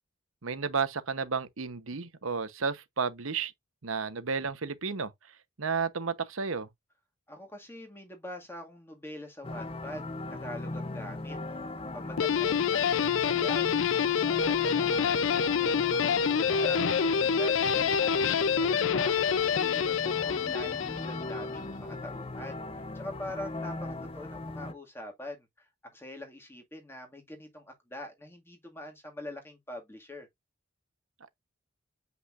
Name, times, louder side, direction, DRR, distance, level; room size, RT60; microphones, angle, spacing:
voice 1, 0.4-3.5 3.8-5.1 5.6-6.7, right 5 dB, 80° right, 1.0 m, -32 dB
voice 2, 7.3-25.7 25.9-30.3, left 1 dB, 10° left, 2.0 m, -44 dB
sound 1, 9.4-24.7, left 2 dB, 25° left, 0.6 m, -39 dB
Guitar, 12.2-21.5, left 7 dB, 70° left, 0.5 m, -27 dB
7.9 x 5.6 x 2.5 m
head